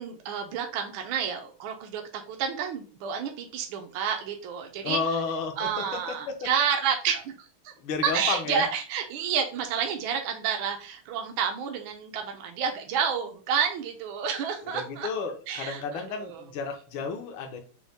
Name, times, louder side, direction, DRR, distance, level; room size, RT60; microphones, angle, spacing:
voice 1, 0.0-5.0 5.6-7.7 8.0-15.1 15.5-16.4, right 7 dB, 75° right, 3 dB, 1.3 m, -30 dB
voice 2, 4.8-5.8 6.3-6.5 7.8-8.6 14.6-17.6, left 5 dB, 70° left, 4 dB, 1.5 m, -32 dB
5.2 x 2.1 x 3.4 m, 0.38 s
omnidirectional pair, 2.4 m